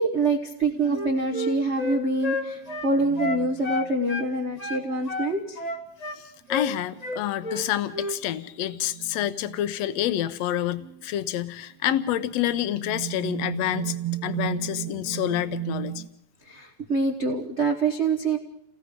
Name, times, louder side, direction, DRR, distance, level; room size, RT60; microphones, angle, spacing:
voice 1, 0.0-5.6 16.5-18.4, right 2 dB, 45° right, 2 dB, 0.9 m, -25 dB
sound 1, 0.7-4.6 7.0-7.1 7.8-7.9 8.6-9.7 10.6-11.0 11.7-16.1, right 15 dB, 70° right, 1.9 m, -36 dB
Wind instrument woodwind instrument, 0.8-4.3 4.6-6.2 6.5-6.7 7.0-7.7 7.9-8.2, left 2 dB, 25° left, 0.9 m, -31 dB
voice 2, 6.1-14.0 14.2-16.0, left 12 dB, 70° left, 12 dB, 2.0 m, -28 dB
29.0 x 19.0 x 5.2 m, 0.76 s
omnidirectional pair, 3.4 m